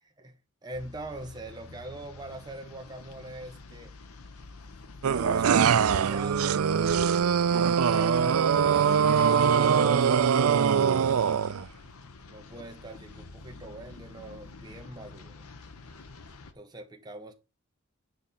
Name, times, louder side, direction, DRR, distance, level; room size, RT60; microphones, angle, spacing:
voice 1, 0.0-3.9 5.0-6.7 7.8-11.0 12.3-15.4 16.5-17.3, right 1 dB, 20° right, 1.3 m, -42 dB
sound 1, 0.7-16.5, left 3 dB, 85° left, 1.0 m, -48 dB
sound 2, 5.0-11.7, right 7 dB, 75° right, 0.4 m, -23 dB
9.7 x 5.4 x 4.2 m
head